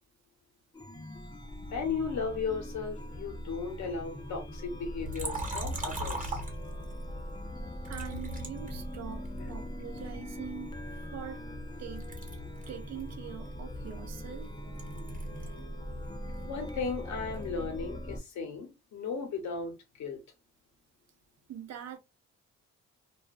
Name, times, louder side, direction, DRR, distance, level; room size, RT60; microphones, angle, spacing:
Chime, 0.7-18.2, equal, 15° left, 0.5 m, -41 dB
voice 1, 1.7-6.5 9.4-9.5 16.4-20.2, left 5 dB, 65° left, 1.0 m, -36 dB
Liquid, 5.1-7.0 7.8-9.4 10.0-11.7 12.0-15.7 16.0-17.6, right 2 dB, 25° right, 1.1 m, -40 dB
voice 2, 7.9-11.4 11.8-12.1 12.7-14.5 21.5-22.0, right 9 dB, 60° right, 0.6 m, -43 dB
2.4 x 2.2 x 2.5 m
cardioid pair, 90°, 30 cm